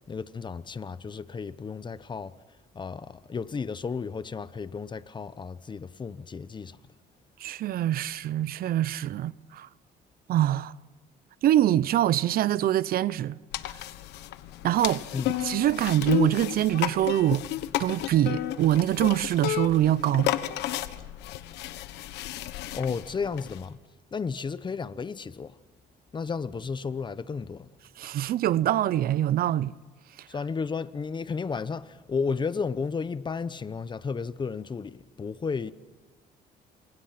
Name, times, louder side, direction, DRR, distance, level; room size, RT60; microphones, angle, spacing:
voice 1, 0.1-2.3 2.7-6.8 15.1-15.3 22.7-23.8 24.1-25.5 26.1-27.7 30.3-35.7, left 5 dB, 25° left, 1.0 m, -33 dB
voice 2, 7.4-9.7 10.3-10.7 11.4-13.3 14.6-15.0 15.4-17.4 17.8-20.3 28.0-29.7, right 12 dB, 60° right, 0.7 m, -24 dB
sound 1, 13.5-23.7, left 13 dB, 85° left, 1.3 m, -32 dB
28.5 x 27.5 x 5.9 m
cardioid pair, 110°, 17 cm